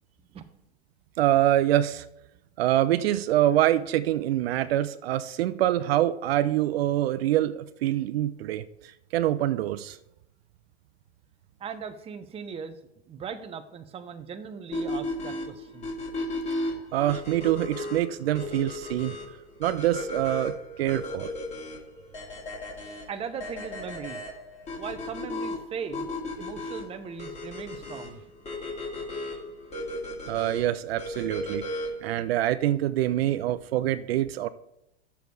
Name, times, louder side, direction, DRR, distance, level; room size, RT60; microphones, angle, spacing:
voice 1, 1.2-2.1 2.6-10.0 16.9-19.2 19.6-21.3 30.3-31.6 32.0-34.5, right 13 dB, 60° right, 12 dB, 0.6 m, -25 dB
voice 2, 11.6-12.8 13.1-15.9 23.1-24.2 24.8-26.1 26.4-28.2, right 6 dB, 15° right, 7 dB, 0.8 m, -38 dB
sound 1, 14.7-32.1, left 1 dB, 20° left, 2.0 m, -35 dB
10.0 x 7.0 x 4.7 m, 0.83 s
hypercardioid pair, 120°, 33 cm